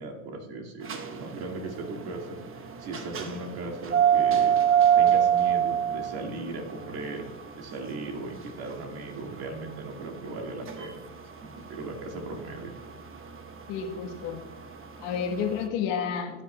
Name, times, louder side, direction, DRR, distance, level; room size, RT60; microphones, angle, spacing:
voice 1, 0.0-4.5 5.0-7.3 7.5-11.0 11.4-12.7, right 2 dB, 55° right, 0 dB, 2.1 m, -37 dB
sound 1, 0.8-15.5, right 9 dB, 30° right, 0.9 m, -26 dB
voice 2, 13.7-14.4 15.0-16.4, left 7 dB, 65° left, 2 dB, 1.4 m, -30 dB
16.0 x 9.3 x 2.2 m, 1.2 s
hypercardioid pair, 85°, 44 cm